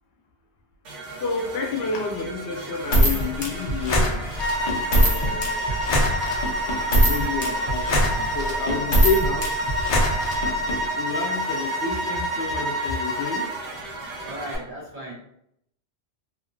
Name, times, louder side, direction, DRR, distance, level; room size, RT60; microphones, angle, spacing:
sound 1, 0.8-14.6, right 2 dB, 90° right, 1.1 m, -37 dB
voice 1, 1.2-4.3 4.9-5.9 6.9-9.5 11.0-13.5, left 4 dB, 80° left, 2 dB, 0.9 m, -29 dB
sound 2, 2.9-10.8, equal, 45° left, 0.5 m, -22 dB
sound 3, 4.4-13.5, equal, 25° right, 0.7 m, -28 dB
voice 2, 10.6-11.0 14.2-15.1, equal, 50° right, -4 dB, 0.9 m, -37 dB
2.9 x 2.5 x 2.5 m, 0.73 s
omnidirectional pair, 1.2 m